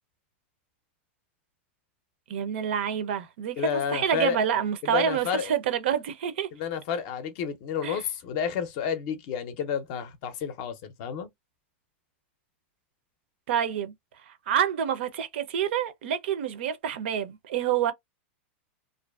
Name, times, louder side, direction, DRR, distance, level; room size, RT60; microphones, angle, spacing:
voice 1, 2.3-6.5 7.8-8.0 13.5-13.9 14.5-17.9, right 9 dB, 65° right, 0.5 m, -27 dB
voice 2, 3.6-4.4 4.8-5.5 6.5-11.3, left 7 dB, 40° left, 0.5 m, -30 dB
2.5 x 2.4 x 2.3 m
supercardioid pair, 175°, 6 cm